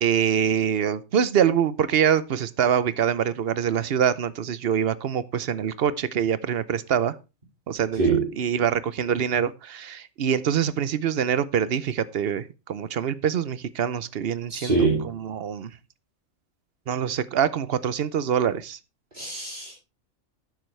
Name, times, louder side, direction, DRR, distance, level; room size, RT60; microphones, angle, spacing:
voice 1, 0.0-7.2 7.7-14.9 15.1-15.7 16.9-18.8, right 8 dB, 55° right, 0.8 m, -25 dB
voice 2, 8.0-8.3 14.5-15.1 19.1-19.7, right 4 dB, 40° right, 2.7 m, -23 dB
11.5 x 9.5 x 3.2 m
omnidirectional pair, 1.4 m